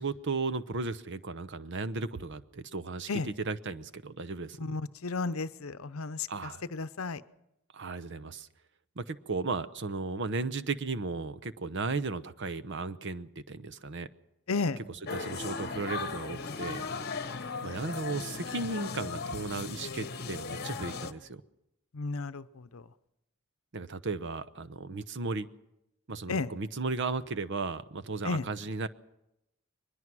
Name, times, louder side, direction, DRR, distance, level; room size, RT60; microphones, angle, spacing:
voice 1, 0.0-4.8 6.3-6.7 7.7-8.5 9.0-14.1 14.9-16.9 17.6-21.4 23.7-25.5 26.1-28.9, right 3 dB, 55° right, 13 dB, 0.8 m, -35 dB
voice 2, 4.6-6.3 6.7-7.2 14.5-14.8 21.9-22.8 26.3-26.5 28.2-28.4, left 3 dB, 65° left, 13 dB, 0.8 m, -33 dB
sound 1, 15.0-21.1, left 4 dB, 45° left, 1.2 m, -37 dB
22.0 x 21.0 x 6.2 m, 0.86 s
head